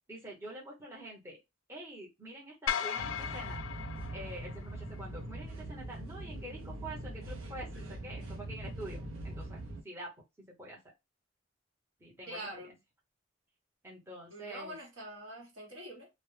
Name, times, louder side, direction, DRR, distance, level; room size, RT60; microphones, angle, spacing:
voice 1, 0.1-1.4 1.7-3.6 4.1-10.1 10.6-10.8 12.0-12.4 12.6-12.7 13.8-14.8, right 1 dB, 15° right, 0.7 m, -46 dB
sound 1, 2.7-5.0, left 8 dB, 80° left, 0.3 m, -37 dB
sound 2, 3.0-9.8, right 1 dB, 90° right, 0.5 m, -42 dB
voice 2, 12.3-12.8 14.3-16.1, right 1 dB, 70° right, 1.0 m, -45 dB
2.0 x 2.0 x 3.1 m
head